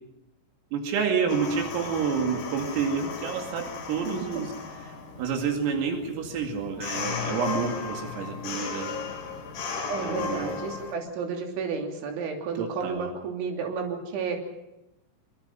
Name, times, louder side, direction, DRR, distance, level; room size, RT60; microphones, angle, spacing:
voice 1, 0.7-4.5 4.8-4.9 5.2-9.0 10.0-10.6 12.6-13.1, right 6 dB, 85° right, 3 dB, 5.1 m, -29 dB
sound 1, 1.3-10.9, left 5 dB, 55° left, 5.3 m, -35 dB
voice 2, 4.1-4.4 9.9-14.4, right 5 dB, 65° right, 2 dB, 5.3 m, -32 dB
25.5 x 24.0 x 5.7 m, 0.92 s
omnidirectional pair, 5.9 m